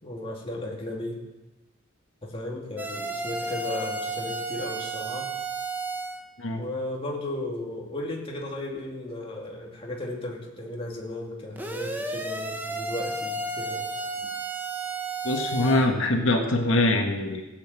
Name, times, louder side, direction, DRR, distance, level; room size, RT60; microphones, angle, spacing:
voice 1, 0.0-1.2 2.2-5.3 6.6-13.9, left 1 dB, 30° left, -1 dB, 2.5 m, -35 dB
sound 1, 2.8-6.2 11.6-15.9, right 2 dB, 10° right, 1.2 m, -32 dB
voice 2, 15.2-17.4, left 2 dB, 85° left, 3 dB, 1.6 m, -23 dB
16.0 x 8.4 x 7.7 m, 1.1 s
head